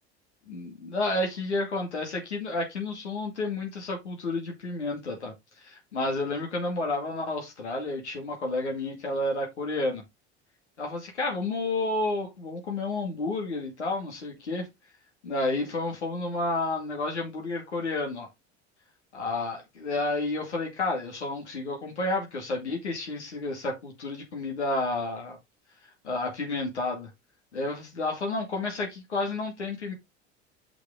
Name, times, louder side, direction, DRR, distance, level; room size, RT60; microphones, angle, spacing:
voice 1, 0.5-10.0 10.8-14.7 15.2-18.3 19.1-25.4 26.0-27.1 27.5-29.9, left 2 dB, 85° left, 2.3 m, -31 dB
6.3 x 6.1 x 3.6 m
hypercardioid pair, 75°, 33 cm